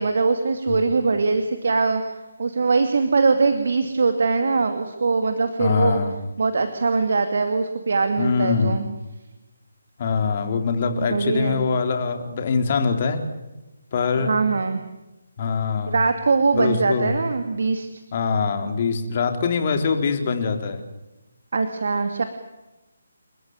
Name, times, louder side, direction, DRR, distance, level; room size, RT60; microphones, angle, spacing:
voice 1, 0.0-6.0 6.4-8.8 11.0-11.6 14.2-14.8 15.9-17.9 21.5-22.2, right 4 dB, 60° right, 7 dB, 2.4 m, -22 dB
voice 2, 5.6-6.1 8.2-8.8 10.0-13.2 13.9-14.3 15.4-16.0 16.5-17.1 18.1-20.8, left 5 dB, 40° left, 6 dB, 4.0 m, -23 dB
30.0 x 14.5 x 9.2 m, 1.0 s
figure-of-eight pair, 150°, 0 cm